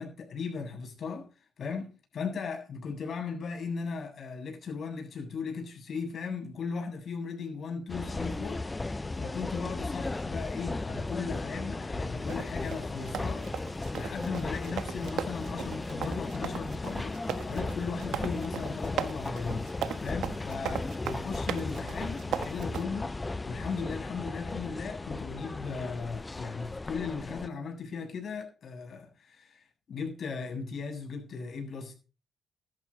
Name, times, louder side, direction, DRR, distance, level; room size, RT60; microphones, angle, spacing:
voice 1, 0.0-13.5 13.9-31.9, left 5 dB, 55° left, 7.7 m, -37 dB
sound 1, 7.9-27.5, left 2 dB, 20° left, 0.7 m, -36 dB
sound 2, 12.3-22.8, right 9 dB, 75° right, 1.3 m, -37 dB
14.0 x 12.5 x 4.2 m
cardioid pair, 90°, 0 cm